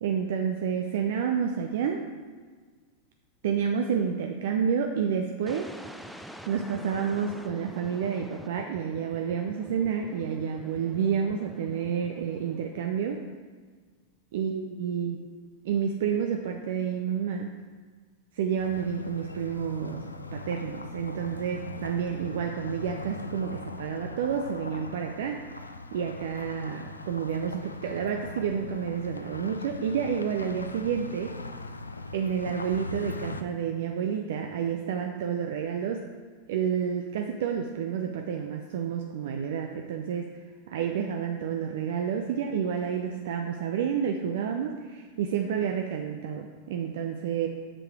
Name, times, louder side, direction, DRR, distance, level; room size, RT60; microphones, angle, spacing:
voice 1, 0.0-2.1 3.4-5.7 6.5-13.2 14.3-15.2 15.7-17.5 18.3-20.0 20.3-25.5 25.9-31.4 32.1-36.1 36.5-40.3 40.7-47.5, right 7 dB, 55° right, 4 dB, 0.5 m, -29 dB
sound 1, 5.5-13.3, equal, ahead, 0.5 m, -46 dB
sound 2, 18.6-33.4, left 2 dB, 80° left, 0.4 m, -40 dB
7.6 x 6.5 x 4.7 m, 1.6 s
figure-of-eight pair, 90°, 0 cm